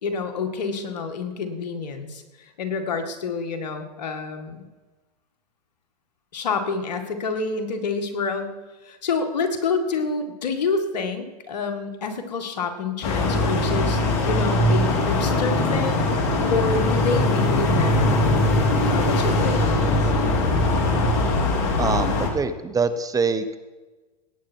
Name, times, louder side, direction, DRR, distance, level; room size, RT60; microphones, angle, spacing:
voice 1, 0.0-4.7 6.3-8.6 8.8-14.0 14.3-16.1 16.5-18.3 18.9-20.1, left 4 dB, 80° left, 6 dB, 2.0 m, -28 dB
sound 1, 13.0-22.3, left 2 dB, 55° left, 2.8 m, -21 dB
voice 2, 21.8-23.6, right 4 dB, 15° right, 11 dB, 0.8 m, -24 dB
17.5 x 9.2 x 4.6 m, 1.2 s
hypercardioid pair, 110°, 21 cm